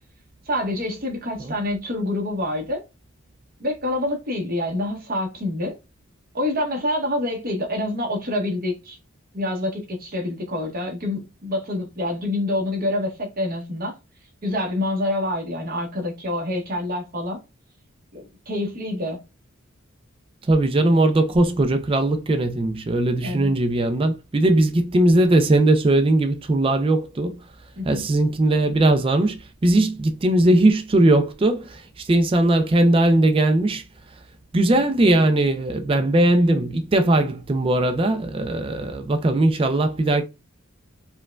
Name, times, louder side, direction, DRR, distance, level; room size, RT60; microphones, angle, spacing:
voice 1, 0.5-2.8 3.6-5.8 6.3-9.0 9.3-13.9 14.4-17.4 18.1-19.2 23.2-23.5 27.8-28.0, left 1 dB, 45° right, 1.1 m, -27 dB
voice 2, 20.5-27.4 27.9-31.8 32.1-33.8 34.5-40.2, right 1 dB, 25° right, 0.4 m, -19 dB
4.4 x 2.2 x 2.3 m
head